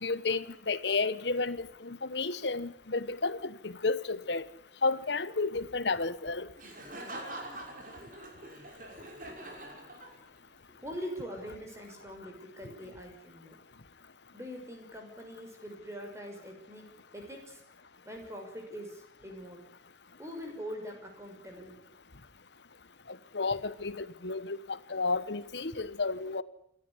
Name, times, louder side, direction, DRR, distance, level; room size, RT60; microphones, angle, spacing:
voice 1, 0.0-4.4 4.8-6.5 23.1-24.6 24.9-26.4, left 3 dB, 75° left, 15 dB, 1.2 m, -32 dB
Laughter, 6.6-10.5, right 1 dB, 45° right, 5.7 m, -44 dB
voice 2, 10.7-13.6 14.3-16.9 17.1-17.6 18.0-19.6 20.2-21.8, equal, 15° right, 2 dB, 6.2 m, -43 dB
28.0 x 13.5 x 9.9 m, 0.71 s
head